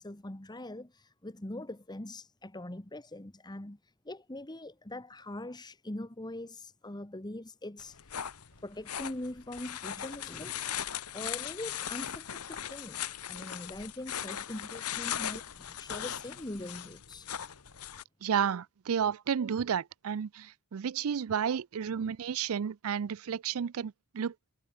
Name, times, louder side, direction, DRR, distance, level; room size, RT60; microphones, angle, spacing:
voice 1, 0.0-8.0 8.6-10.7 11.1-13.0 13.3-17.3, left 1 dB, 20° left, 1.4 m, -42 dB
sound 1, 7.8-18.0, left 10 dB, 90° left, 1.3 m, -39 dB
voice 2, 18.2-24.3, right 7 dB, 70° right, 0.4 m, -32 dB
head